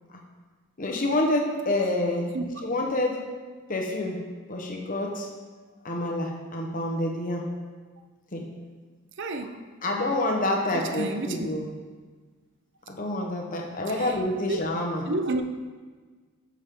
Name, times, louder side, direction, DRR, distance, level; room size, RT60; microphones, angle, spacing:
voice 1, 0.8-2.4 2.6-3.2 3.7-5.3 5.8-7.5 8.3-8.4 9.8-11.6 12.9-15.0, left 1 dB, 40° left, 0 dB, 1.1 m, -27 dB
voice 2, 2.3-2.7 9.2-9.6 10.7-11.5 14.0-14.1 14.5-14.6 15.1-15.4, right 2 dB, 55° right, 7 dB, 0.7 m, -30 dB
13.5 x 6.3 x 3.8 m, 1.4 s
head